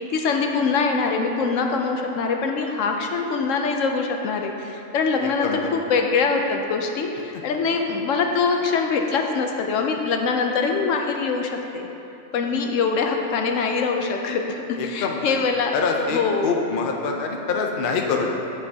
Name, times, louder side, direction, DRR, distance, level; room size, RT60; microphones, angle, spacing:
voice 1, 0.1-11.9 12.3-15.7 16.1-16.5, left 4 dB, 75° left, 3 dB, 0.9 m, -23 dB
voice 2, 5.2-5.7 14.8-15.4 15.7-18.3, left 4 dB, 55° left, 1 dB, 0.7 m, -25 dB
8.2 x 7.6 x 2.8 m, 2.9 s
omnidirectional pair, 1.3 m